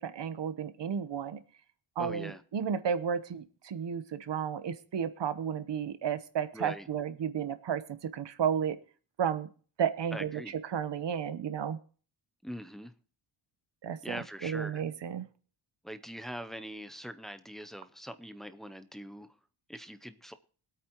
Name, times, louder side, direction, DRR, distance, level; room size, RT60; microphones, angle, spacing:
voice 1, 0.0-1.4 2.0-8.8 9.2-9.5 9.8-10.3 10.7-11.8 13.8-14.2 14.4-15.2, right 7 dB, 55° right, 1.0 m, -32 dB
voice 2, 2.0-2.4 6.5-6.9 10.1-10.5 12.4-12.9 14.0-14.8 15.8-19.4 19.7-20.3, equal, ahead, 0.5 m, -42 dB
23.5 x 8.7 x 3.0 m
wide cardioid pair, 145°, 50 cm